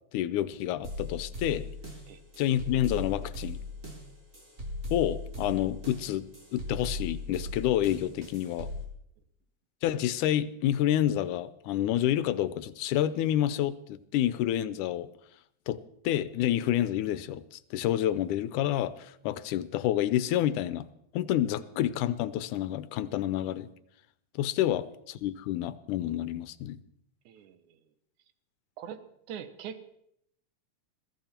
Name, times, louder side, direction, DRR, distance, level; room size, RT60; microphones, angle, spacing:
voice 1, 0.1-1.7 2.4-3.6 4.9-8.7 9.8-15.1 15.7-20.9 21.1-23.7 24.4-26.8, left 12 dB, 85° left, 15 dB, 2.2 m, -29 dB
sound 1, 0.8-8.8, left 2 dB, 25° right, 3.4 m, -38 dB
voice 2, 27.3-27.8 28.8-29.0 29.3-29.8, right 8 dB, 80° right, 10 dB, 2.6 m, -42 dB
21.5 x 14.5 x 4.4 m, 0.73 s
omnidirectional pair, 3.5 m